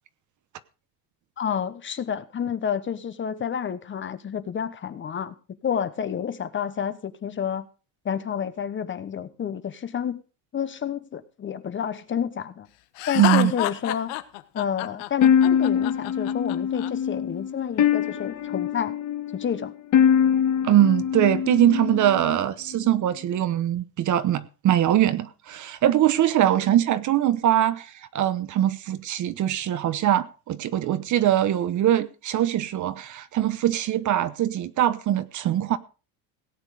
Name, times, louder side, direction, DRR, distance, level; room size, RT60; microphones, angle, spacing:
voice 1, 1.4-5.3 5.6-7.7 8.0-10.2 10.5-12.7 13.1-14.1 14.5-19.0 19.3-19.7, left 8 dB, 25° left, 1.0 m, -29 dB
Laughter, 13.0-16.9, left 16 dB, 85° left, 1.3 m, -29 dB
voice 2, 13.1-13.5 20.6-35.8, right 12 dB, 40° right, 1.0 m, -22 dB
sound 1, 15.2-22.3, left 8 dB, 45° left, 1.5 m, -23 dB
17.5 x 8.9 x 4.9 m
cardioid pair, 140°, 43 cm